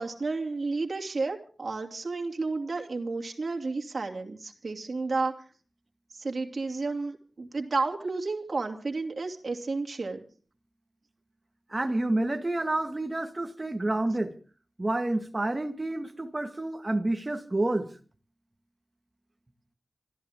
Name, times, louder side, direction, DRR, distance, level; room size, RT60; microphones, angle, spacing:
voice 1, 0.0-5.4 6.1-10.2, right 3 dB, 50° right, 2.8 m, -32 dB
voice 2, 11.7-14.4 14.8-17.9, right 2 dB, 25° right, 1.8 m, -29 dB
26.0 x 13.5 x 3.7 m
wide cardioid pair, 115°, 0 cm